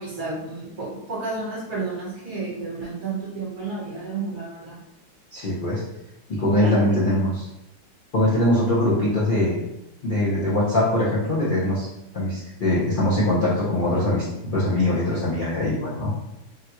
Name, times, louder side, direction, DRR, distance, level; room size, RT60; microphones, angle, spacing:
voice 1, 0.0-4.8 6.5-7.1, right 3 dB, 50° right, -9 dB, 1.4 m, -31 dB
voice 2, 5.3-5.8 6.3-7.5 8.1-9.6 10.0-11.9 12.1-14.2 14.5-16.1, left 1 dB, 75° left, -8 dB, 0.4 m, -22 dB
3.6 x 2.2 x 2.9 m, 0.92 s
omnidirectional pair, 2.0 m